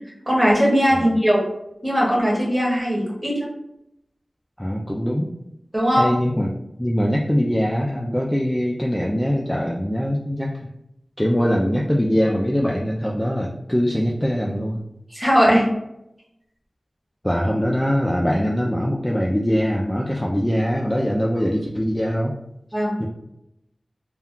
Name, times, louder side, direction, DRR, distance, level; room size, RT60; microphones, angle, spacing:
voice 1, 0.3-1.4 1.8-3.5 5.7-6.1 15.1-15.7 22.7-23.0, equal, 10° right, -4 dB, 1.0 m, -19 dB
voice 2, 4.6-5.3 6.0-6.5 6.8-10.7 11.2-14.8 17.2-22.3 23.0-23.1, equal, 10° left, -2 dB, 0.3 m, -22 dB
2.2 x 2.2 x 3.6 m, 0.82 s
wide cardioid pair, 60°, 0 cm